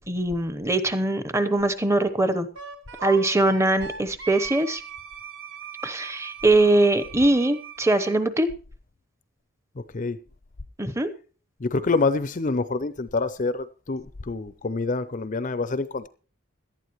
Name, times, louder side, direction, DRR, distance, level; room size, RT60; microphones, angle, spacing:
voice 1, 0.1-2.5 3.0-4.8 5.8-8.5 10.8-11.1, right 2 dB, 10° right, 0.9 m, -22 dB
Wind instrument woodwind instrument, 2.6-8.2, right 7 dB, 55° right, 1.7 m, -39 dB
voice 2, 11.6-16.1, left 3 dB, 35° left, 0.5 m, -26 dB
17.5 x 12.0 x 3.1 m
head